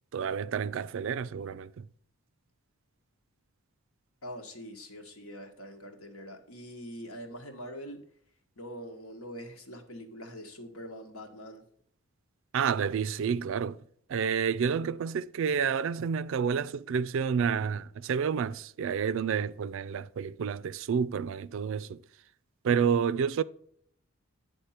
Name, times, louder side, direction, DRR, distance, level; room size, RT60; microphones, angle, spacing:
voice 1, 0.1-1.9 12.5-13.8 14.1-22.0 22.6-23.4, right 7 dB, 65° right, 0.3 m, -29 dB
voice 2, 4.2-8.0 8.6-11.6, equal, 85° left, 1.4 m, -44 dB
9.6 x 3.6 x 5.7 m
head